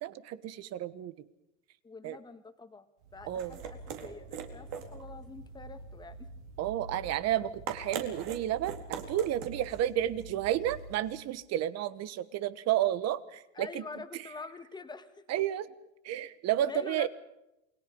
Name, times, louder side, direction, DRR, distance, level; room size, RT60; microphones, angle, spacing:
voice 1, 0.0-1.1 2.0-2.2 3.3-3.6 6.6-13.8 15.3-15.6 16.0-17.1, right 12 dB, 45° right, 15 dB, 1.4 m, -31 dB
voice 2, 1.8-2.9 3.1-6.3 7.0-7.1 7.4-7.5 13.5-15.2 16.6-17.1, left 4 dB, 10° left, 8 dB, 1.9 m, -45 dB
sound 1, 3.0-11.2, right 6 dB, 60° right, 4.2 m, -43 dB
28.5 x 22.0 x 5.4 m, 0.88 s
supercardioid pair, 120°, 37 cm